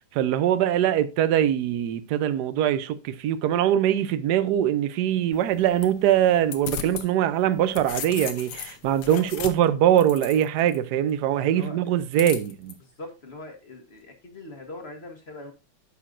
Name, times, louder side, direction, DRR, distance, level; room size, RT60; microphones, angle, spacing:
voice 1, 0.0-12.8, right 11 dB, 75° right, 0.9 m, -22 dB
sound 1, 5.3-7.1 7.5-10.8 12.2-12.7, left 8 dB, 60° left, 1.2 m, -37 dB
voice 2, 11.4-11.8 12.8-15.5, left 2 dB, 35° left, 1.2 m, -42 dB
10.0 x 6.5 x 2.6 m
omnidirectional pair, 2.4 m